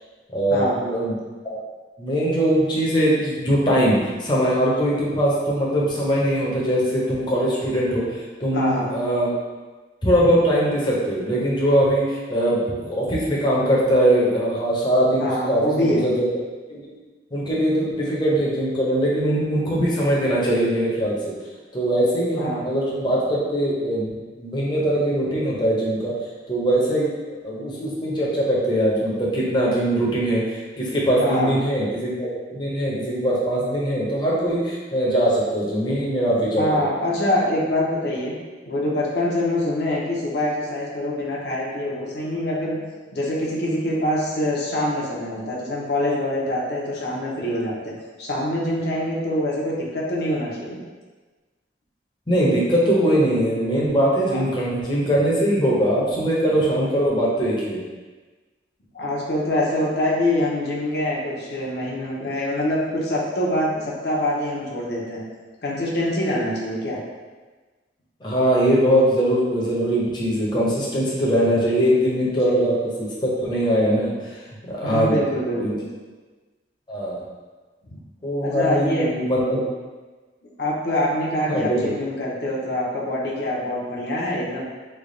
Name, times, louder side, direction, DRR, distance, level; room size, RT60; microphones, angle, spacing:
voice 1, 0.3-1.1 1.4-1.6 2.0-9.3 10.0-16.3 16.7-17.0 17.3-21.3 21.7-24.1 24.4-26.1 26.5-36.8 52.3-57.8 68.2-72.7 73.2-74.4 74.6-75.2 75.5-75.7 76.9-77.2 78.2-79.6 81.5-81.9, equal, 25° left, -6 dB, 0.7 m, -21 dB
voice 2, 8.5-8.9 15.2-16.1 22.4-22.6 31.2-31.5 36.6-38.3 38.7-42.8 43.1-47.9 48.2-50.8 54.3-54.5 58.9-65.2 65.6-67.0 72.4-72.7 74.8-75.8 78.4-79.2 80.6-84.6, left 1 dB, 65° left, -5 dB, 0.8 m, -25 dB
3.3 x 2.3 x 3.8 m, 1.3 s
head